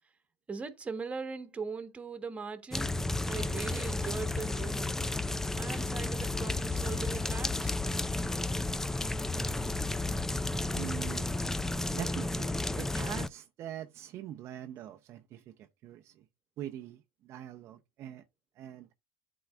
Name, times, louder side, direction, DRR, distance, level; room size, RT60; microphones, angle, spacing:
voice 1, 0.5-2.9 3.3-4.9 5.5-7.7, right 5 dB, 20° right, 1.3 m, -40 dB
sound 1, 2.7-13.3, left 2 dB, 5° left, 0.4 m, -32 dB
voice 2, 10.7-11.3 11.9-16.2 16.6-18.2 18.6-18.9, right 11 dB, 50° right, 0.6 m, -43 dB
11.0 x 4.0 x 2.4 m
supercardioid pair, 100°, 6 cm